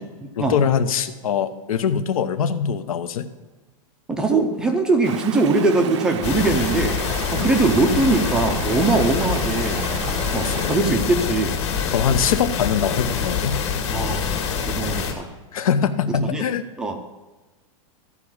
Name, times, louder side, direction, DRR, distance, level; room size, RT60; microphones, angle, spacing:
voice 1, 0.4-3.3 7.4-7.6 10.3-10.8 11.9-13.6 15.5-16.6, left 7 dB, 85° left, 11 dB, 0.9 m, -23 dB
voice 2, 4.1-7.0 7.3-9.8 10.3-11.5 13.9-15.3 16.2-16.4 16.8-17.0, right 3 dB, 5° right, 3 dB, 0.4 m, -21 dB
Stream, 5.0-10.8, right 11 dB, 55° right, 0.5 m, -33 dB
sound 1, 6.2-15.1, left 6 dB, 55° left, 1.9 m, -25 dB
13.5 x 4.8 x 7.1 m, 1.2 s
supercardioid pair, 180°, 18 cm